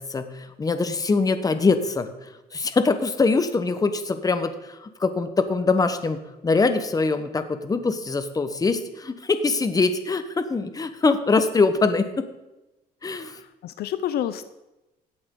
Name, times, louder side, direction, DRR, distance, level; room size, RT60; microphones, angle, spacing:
voice 1, 0.0-12.3 13.0-13.4, left 4 dB, 20° left, 10 dB, 1.0 m, -23 dB
voice 2, 13.2-14.4, left 10 dB, 70° left, 12 dB, 0.6 m, -29 dB
16.0 x 8.7 x 3.9 m, 1.0 s
cardioid pair, 110°, 17 cm